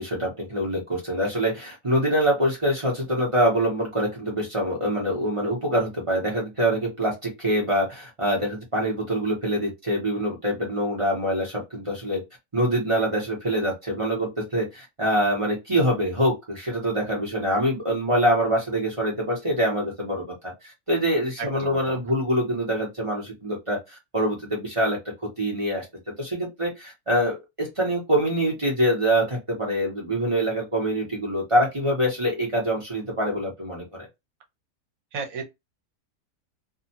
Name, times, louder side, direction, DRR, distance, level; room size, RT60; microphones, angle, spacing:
voice 1, 0.0-12.2 12.5-25.0 25.4-25.8 26.2-34.1, equal, 25° right, 1.0 m, -25 dB
voice 2, 21.4-21.8 35.1-35.5, right 5 dB, 70° right, 1.2 m, -33 dB
2.7 x 2.4 x 2.8 m
omnidirectional pair, 1.6 m